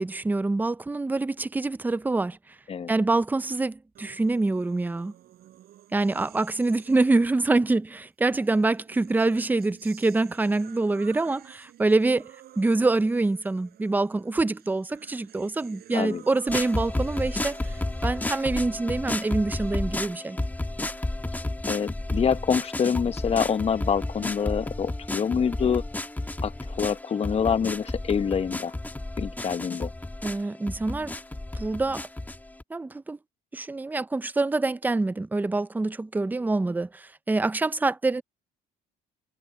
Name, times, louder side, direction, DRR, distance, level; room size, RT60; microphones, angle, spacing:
voice 1, 0.0-2.4 2.9-5.1 5.9-12.3 12.6-17.6 18.0-20.4 30.2-31.2 31.5-32.0 32.7-33.2 33.5-38.2, right 3 dB, 10° right, 0.6 m, -25 dB
sound 1, 3.9-7.4 8.4-20.0, right 13 dB, 70° right, 7.2 m, -52 dB
sound 2, 16.5-32.6, left 2 dB, 10° left, 1.7 m, -32 dB
voice 2, 21.7-25.8 26.4-26.5 26.8-28.7 29.2-29.9, left 7 dB, 35° left, 1.1 m, -26 dB
cardioid pair, 110°, 17 cm